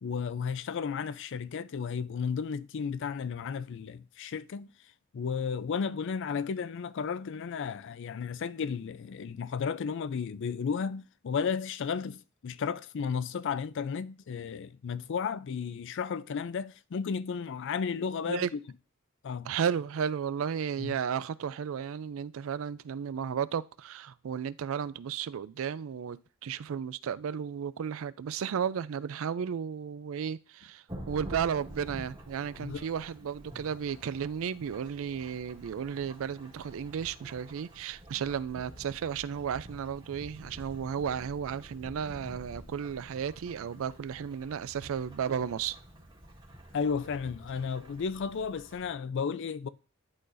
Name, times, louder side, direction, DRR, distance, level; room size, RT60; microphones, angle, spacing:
voice 1, 0.0-4.7 5.1-18.5 19.2-19.5 20.8-21.0 32.6-32.9 46.7-49.7, left 6 dB, 60° left, 0.4 m, -33 dB
voice 2, 19.4-45.8, right 7 dB, 70° right, 0.4 m, -34 dB
Thunderstorm / Rain, 30.9-48.9, equal, 20° right, 2.0 m, -49 dB
11.0 x 3.9 x 2.5 m
head